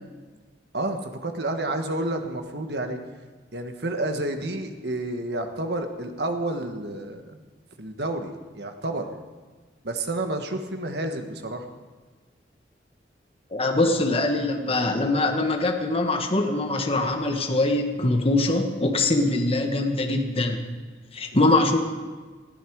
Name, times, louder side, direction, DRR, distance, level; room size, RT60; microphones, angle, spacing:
voice 1, 0.7-3.0 3.5-7.4 7.8-9.1 9.8-11.6, right 1 dB, 60° right, 5 dB, 1.5 m, -30 dB
voice 2, 13.5-20.6 21.1-21.8, left 2 dB, 30° left, 3 dB, 1.4 m, -23 dB
19.5 x 13.5 x 4.8 m, 1.4 s
head